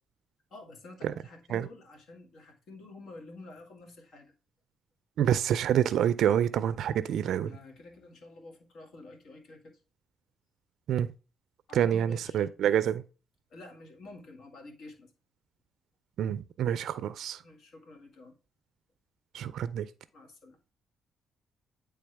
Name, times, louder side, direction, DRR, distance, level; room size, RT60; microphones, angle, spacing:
voice 1, 0.5-4.3 7.4-9.8 11.7-12.5 13.5-15.1 17.4-18.4 20.1-20.6, left 2 dB, 70° left, 1.9 m, -49 dB
voice 2, 5.2-7.5 10.9-11.1 11.7-13.0 16.2-17.4 19.3-19.9, right 9 dB, 75° right, 0.4 m, -27 dB
9.4 x 3.4 x 3.3 m
cardioid pair, 90°, 0 cm